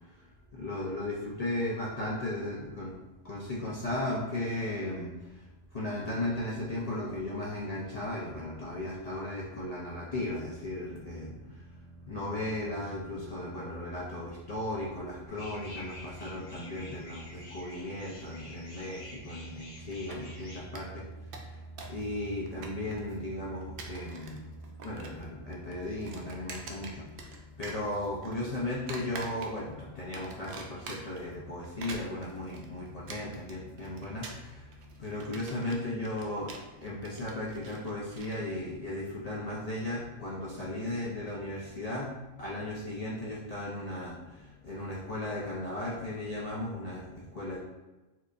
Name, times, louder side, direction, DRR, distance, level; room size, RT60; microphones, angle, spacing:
voice 1, 0.5-2.9 3.2-5.1 5.7-11.4 12.0-34.6 35.0-47.6, left 1 dB, 50° left, -6 dB, 0.4 m, -36 dB
sound 1, 15.3-20.6, left 2 dB, 80° left, 1.6 m, -49 dB
sound 2, 19.9-20.5 20.8-20.9 21.1-22.0 22.3-23.1 23.6-24.4 24.6-25.3 25.5-27.4 27.6-28.4 28.9-29.7 30.1-31.2 31.6-38.4, right 3 dB, 60° right, 0.6 m, -45 dB
4.4 x 2.5 x 2.5 m, 1.1 s
omnidirectional pair, 1.3 m